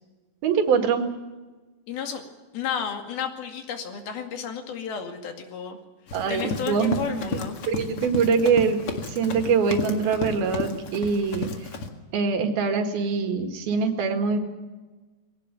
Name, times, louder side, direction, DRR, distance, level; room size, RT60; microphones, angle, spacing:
voice 1, 0.4-1.0 6.1-7.0 7.2-7.4 7.7-8.8 9.1-11.5 12.1-14.4, right 5 dB, 90° right, 5 dB, 3.9 m, -23 dB
voice 2, 1.9-2.2 2.5-5.8 6.3-7.6, left 7 dB, 90° left, 5 dB, 4.1 m, -32 dB
Run, 6.1-11.9, left 4 dB, 45° left, 2.5 m, -33 dB
21.0 x 17.5 x 9.2 m, 1.2 s
omnidirectional pair, 4.2 m